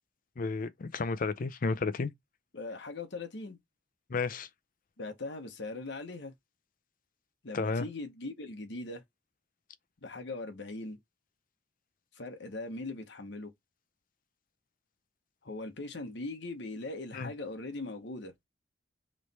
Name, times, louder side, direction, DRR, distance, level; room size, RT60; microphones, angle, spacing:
voice 1, 0.4-2.1 4.1-4.5 7.5-7.9 17.1-17.3, left 4 dB, 50° left, 0.5 m, -32 dB
voice 2, 2.5-3.6 5.0-6.3 7.4-9.0 10.0-11.0 12.1-13.5 15.4-18.3, left 2 dB, 65° left, 1.0 m, -40 dB
3.2 x 3.2 x 4.0 m
head